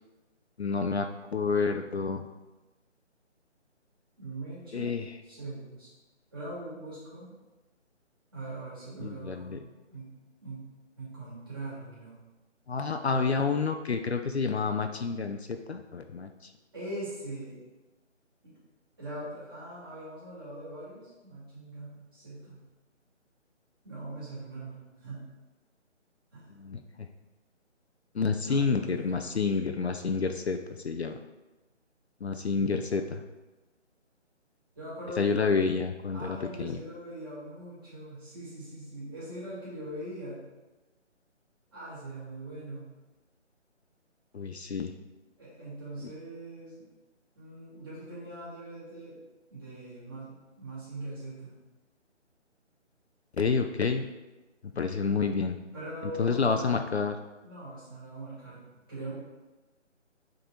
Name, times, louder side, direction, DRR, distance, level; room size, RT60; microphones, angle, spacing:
voice 1, 0.6-2.2 4.7-5.0 9.0-9.6 12.7-16.3 26.6-27.1 28.1-30.6 30.8-31.2 32.2-33.2 35.2-36.8 44.3-44.9 53.4-54.0 54.7-55.6 56.2-57.2, left 5 dB, 60° left, 6 dB, 0.5 m, -29 dB
voice 2, 4.2-4.9 5.2-5.9 6.3-7.3 8.3-9.6 9.9-10.1 10.4-10.6 11.0-12.2 13.0-13.4 16.7-17.6 18.4-18.5 19.0-22.6 23.8-25.3 26.3-26.5 28.5-29.2 32.5-32.7 34.7-35.3 36.1-40.4 41.7-42.8 45.4-46.8 47.3-49.2 49.5-51.6 55.7-56.7 57.4-59.1, right 1 dB, 20° right, -10 dB, 2.4 m, -41 dB
7.2 x 3.9 x 5.0 m, 1.1 s
hypercardioid pair, 175°, 37 cm